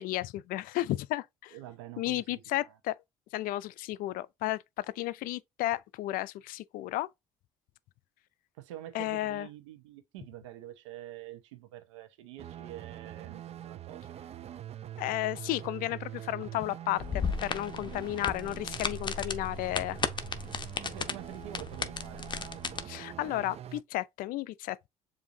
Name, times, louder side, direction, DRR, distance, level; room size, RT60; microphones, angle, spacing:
voice 1, 0.0-1.6 2.0-2.9 3.3-7.1 8.9-9.5 15.0-20.0 22.9-24.9, left 16 dB, 65° left, 0.4 m, -33 dB
voice 2, 1.5-2.7 8.6-14.2 17.9-18.0 20.8-22.6, right 13 dB, 90° right, 0.8 m, -47 dB
sound 1, 12.4-23.8, right 11 dB, 45° right, 0.4 m, -44 dB
sound 2, 17.0-22.8, left 5 dB, 30° left, 0.7 m, -35 dB
7.0 x 2.7 x 2.6 m
hypercardioid pair, 60°, 15 cm